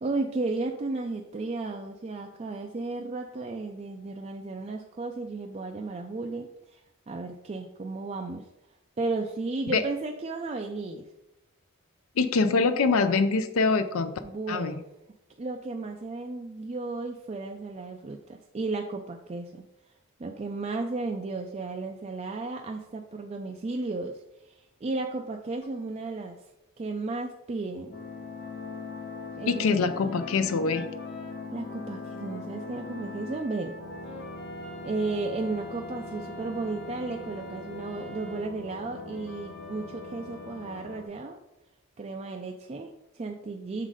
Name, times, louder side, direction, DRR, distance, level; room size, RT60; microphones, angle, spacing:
voice 1, 0.0-6.8 7.1-8.5 9.0-11.0 14.2-14.8 15.4-19.6 20.2-26.5 26.8-27.9 29.4-29.9 31.5-33.7 34.8-41.4 42.0-43.9, right 3 dB, 30° right, 2 dB, 0.3 m, -34 dB
voice 2, 12.2-14.1 14.5-14.8 29.5-30.8, left 4 dB, 70° left, 10 dB, 0.5 m, -24 dB
sound 1, 25.6-25.7 27.9-41.1, left 3 dB, 45° left, 0.9 m, -40 dB
6.3 x 3.8 x 4.8 m, 0.88 s
head